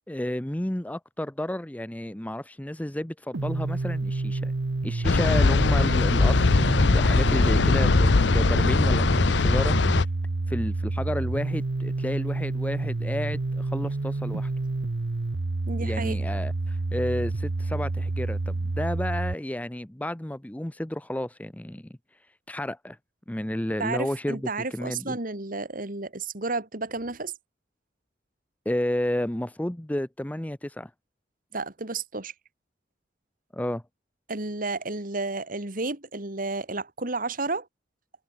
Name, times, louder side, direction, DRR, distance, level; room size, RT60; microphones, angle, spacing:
voice 1, 0.1-4.5 4.8-10.0 10.5-14.5 15.8-21.9 22.5-23.0 23.3-25.2 28.7-30.9 33.5-33.8, left 1 dB, 10° left, 0.6 m, -31 dB
sound 1, 3.3-19.3, right 2 dB, 75° right, 0.8 m, -29 dB
sound 2, 5.0-10.0, left 3 dB, 70° left, 0.7 m, -21 dB
voice 2, 7.3-7.6 8.6-8.7 15.7-16.2 23.8-27.3 31.5-32.3 34.3-37.7, right 3 dB, 50° right, 2.5 m, -32 dB
head